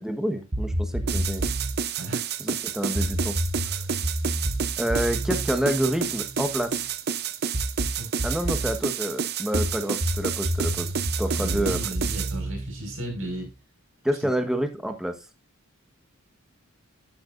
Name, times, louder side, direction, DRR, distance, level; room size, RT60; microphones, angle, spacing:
voice 1, 0.0-1.5 2.4-3.4 3.7-3.8 4.8-6.7 8.2-10.9 11.2-11.8 14.0-15.1, equal, ahead, 7 dB, 1.4 m, -28 dB
sound 1, 0.5-1.8 2.9-6.7 7.5-8.8 9.5-13.5, right 1 dB, 30° right, 1.1 m, -29 dB
sound 2, 1.1-12.3, right 7 dB, 50° right, 0.7 m, -30 dB
voice 2, 11.4-13.5 14.2-14.5, right 1 dB, 70° right, 3 dB, 5.6 m, -35 dB
12.5 x 8.7 x 2.6 m, 0.28 s
head